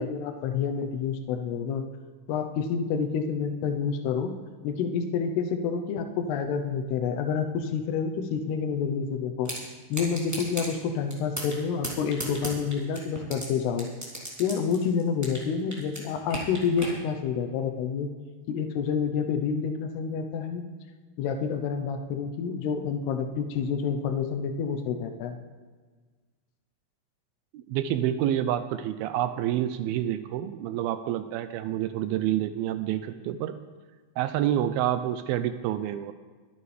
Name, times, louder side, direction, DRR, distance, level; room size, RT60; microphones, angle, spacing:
voice 1, 0.0-1.8 2.3-4.3 4.6-9.5 9.9-13.9 14.4-18.1 18.5-20.6 21.2-25.4, left 6 dB, 85° left, 5 dB, 2.9 m, -28 dB
sound 1, 9.4-9.6 9.9-10.7 11.1-11.6 11.8-13.4 13.8-15.5 15.7-16.9, right 1 dB, 5° right, 2.4 m, -35 dB
voice 2, 27.5-33.6 34.2-36.1, right 11 dB, 80° right, 10 dB, 2.3 m, -28 dB
23.5 x 9.7 x 3.4 m, 1.4 s
omnidirectional pair, 4.7 m